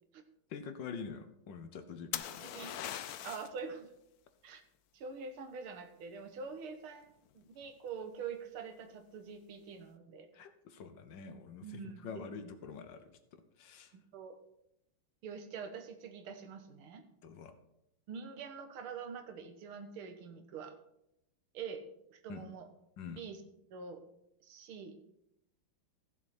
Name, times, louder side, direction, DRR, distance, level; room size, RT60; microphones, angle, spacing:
voice 1, 0.5-2.4 10.3-13.9 17.2-17.5 22.3-22.4 23.0-23.2, left 6 dB, 65° left, 9 dB, 1.5 m, -46 dB
sound 1, 2.1-3.6 7.3-7.7, left 11 dB, 80° left, 0.8 m, -40 dB
voice 2, 2.4-2.8 3.2-3.9 4.4-4.6 4.9-10.3 11.6-12.5 13.9-14.4 15.2-17.0 18.1-20.7 21.5-21.8 22.1-22.7 23.1-23.4 23.7-24.0 24.4-25.0, right 5 dB, 85° right, 8 dB, 2.0 m, -45 dB
15.5 x 7.0 x 4.3 m, 0.81 s
omnidirectional pair, 2.3 m